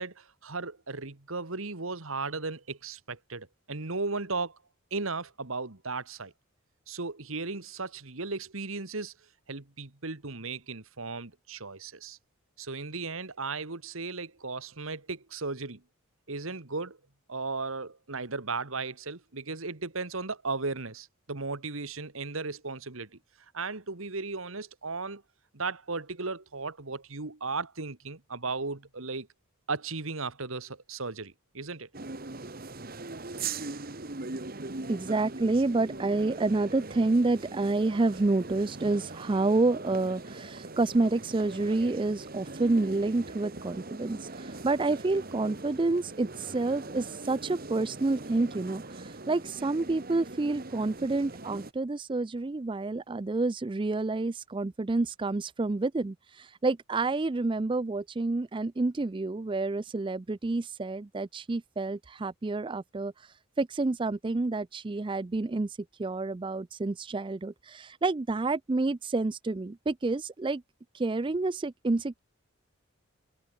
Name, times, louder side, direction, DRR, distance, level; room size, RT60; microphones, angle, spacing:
voice 1, 0.0-4.6 4.9-6.3 6.9-9.1 9.5-12.2 12.6-15.8 16.3-17.0 17.3-23.2 23.5-25.2 25.5-29.3 29.7-31.9, right 3 dB, 75° right, 1.9 m, -36 dB
sound 1, 31.9-51.7, right 3 dB, 45° right, 1.6 m, -41 dB
voice 2, 34.9-70.6 70.9-72.2, right 3 dB, 25° right, 0.4 m, -29 dB
head